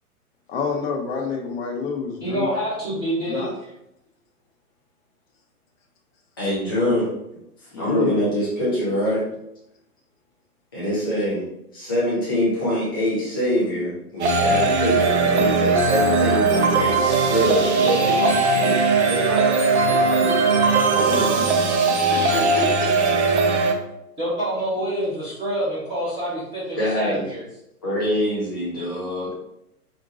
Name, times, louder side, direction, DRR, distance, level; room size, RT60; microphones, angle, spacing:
voice 1, 0.5-2.5 3.2-3.5 7.7-8.2, left 4 dB, 40° left, 1 dB, 0.7 m, -27 dB
voice 2, 2.2-3.5 17.8-18.3 19.3-21.4 24.2-27.4, right 1 dB, 10° right, -10 dB, 0.9 m, -27 dB
voice 3, 6.4-7.1 7.6-9.2 10.7-11.5 11.7-17.8 18.3-18.7 19.0-19.2 20.9-21.6 22.1-23.1 26.8-27.2 27.8-29.3, equal, 15° left, -7 dB, 0.3 m, -25 dB
sound 1, 14.2-23.7, right 3 dB, 50° right, 0.5 m, -19 dB
3.8 x 2.2 x 2.8 m, 0.80 s
figure-of-eight pair, 115°, 46 cm